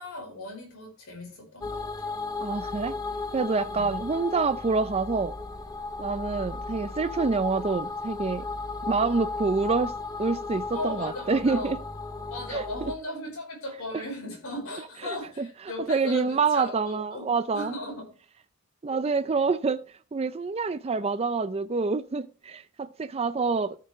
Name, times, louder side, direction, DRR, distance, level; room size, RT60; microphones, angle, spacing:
voice 1, 0.0-2.1 3.7-3.9 10.7-11.7 12.3-18.1, left 1 dB, 70° left, 4.9 m, -37 dB
sound 1, 1.6-12.9, left 3 dB, 15° left, 0.7 m, -35 dB
voice 2, 2.4-2.9 3.3-5.3 6.0-8.5 8.9-9.9 10.2-11.8 12.5-12.6 13.9-14.0 15.0-15.5 15.9-17.7 18.8-19.8 20.1-23.8, right 4 dB, 25° right, 0.4 m, -27 dB
14.0 x 6.8 x 3.2 m
head